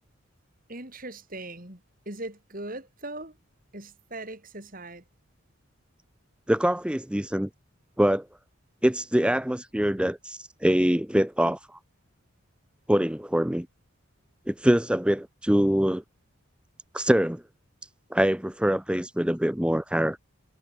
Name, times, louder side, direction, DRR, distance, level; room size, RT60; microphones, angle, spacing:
voice 1, 0.7-3.4 3.7-5.0, right 2 dB, 40° right, 4.9 m, -40 dB
voice 2, 6.5-7.5 8.0-8.3 8.8-11.8 12.9-13.7 14.5-16.0 16.9-17.4 18.1-20.2, equal, 5° right, 0.6 m, -24 dB
head